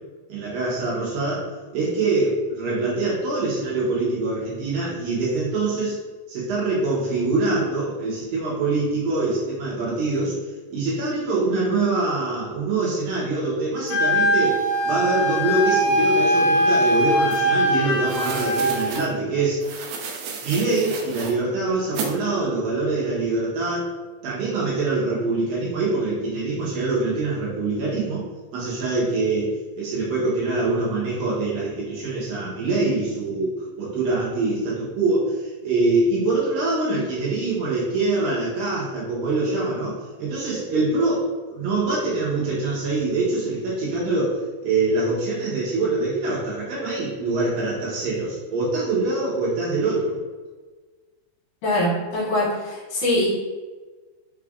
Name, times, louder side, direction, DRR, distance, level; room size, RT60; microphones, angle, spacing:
voice 1, 0.3-1.5 1.7-6.0 6.3-10.4 10.7-19.6 20.4-23.9 24.2-28.3 28.5-50.1, right 3 dB, 70° right, -7 dB, 2.4 m, -24 dB
Wind instrument woodwind instrument, 13.9-18.9, equal, 85° left, 2.5 m, -21 dB
sound 1, 17.3-17.4 18.0-19.1 19.6-21.3 21.9-22.1, right 5 dB, 90° right, 2.0 m, -32 dB
voice 2, 51.6-53.3, left 1 dB, 65° left, -8 dB, 2.8 m, -23 dB
6.0 x 3.3 x 2.3 m, 1.3 s
omnidirectional pair, 4.7 m